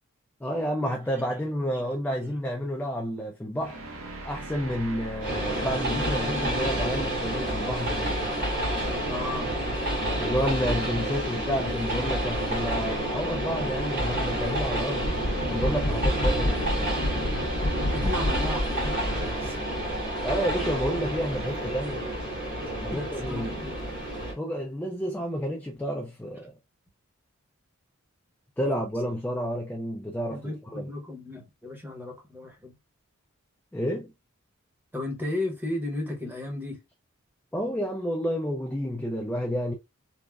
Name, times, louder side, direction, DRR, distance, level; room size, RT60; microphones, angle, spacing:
voice 1, 0.4-3.8 4.2-8.1 10.2-15.1 15.5-17.0 20.2-22.0 22.7-23.6 24.4-26.5 28.6-30.9 33.7-34.1 37.5-39.7, equal, 10° left, 0.3 m, -30 dB
sound 1, 3.6-8.6, right 2 dB, 65° right, 0.7 m, -42 dB
Train, 5.2-24.3, right 1 dB, 45° right, 1.3 m, -29 dB
voice 2, 9.1-9.6 17.9-19.6 22.6-23.9 28.6-28.8 30.3-32.7 34.9-36.8, left 2 dB, 10° right, 0.9 m, -35 dB
sound 2, 15.0-19.5, left 1 dB, 60° left, 0.7 m, -29 dB
3.4 x 2.0 x 2.2 m
head